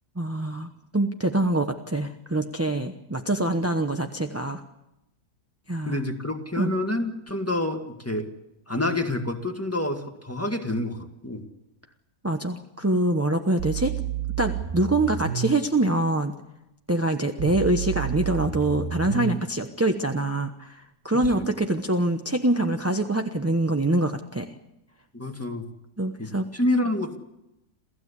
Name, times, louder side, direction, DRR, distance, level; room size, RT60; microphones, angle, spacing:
voice 1, 0.2-4.6 5.7-6.0 6.6-6.7 12.2-14.0 14.4-16.3 16.9-24.5 26.0-26.5, right 1 dB, 10° right, 4 dB, 0.7 m, -25 dB
voice 2, 5.9-8.3 8.7-11.5 21.1-21.5 25.1-25.7 26.2-27.2, left 1 dB, 10° left, 4 dB, 1.9 m, -28 dB
sound 1, 13.6-15.5 17.4-19.4 21.2-21.3, right 10 dB, 45° right, 1.6 m, -30 dB
28.0 x 15.5 x 8.4 m, 0.90 s
omnidirectional pair, 1.8 m